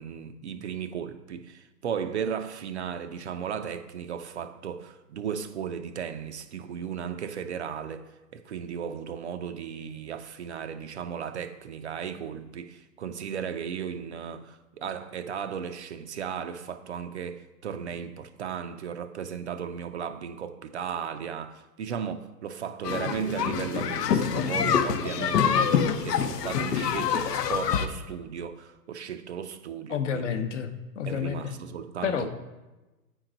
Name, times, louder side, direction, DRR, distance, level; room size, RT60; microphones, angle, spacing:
voice 1, 0.0-30.3 31.1-32.3, right 7 dB, 45° right, 0.5 m, -35 dB
sound 1, 22.8-27.9, left 7 dB, 75° left, 0.8 m, -26 dB
voice 2, 29.9-31.4 32.0-32.3, left 7 dB, 50° left, 0.8 m, -30 dB
8.8 x 4.6 x 3.8 m
hypercardioid pair, 145°, 48 cm